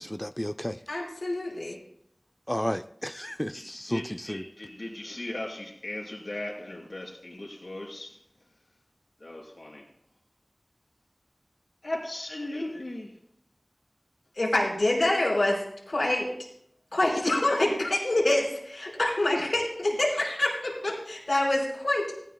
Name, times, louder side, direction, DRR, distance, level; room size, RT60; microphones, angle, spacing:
voice 1, 0.0-0.8 2.5-4.4, equal, 10° left, 8 dB, 0.4 m, -32 dB
voice 2, 0.9-1.8 14.3-15.6 15.9-16.3 16.9-22.1, left 1 dB, 90° left, -3 dB, 4.8 m, -26 dB
voice 3, 3.5-8.2 9.2-9.9 11.8-13.1, left 1 dB, 70° left, 0 dB, 3.4 m, -37 dB
18.5 x 15.5 x 2.3 m, 0.72 s
wide cardioid pair, 40°, 0 cm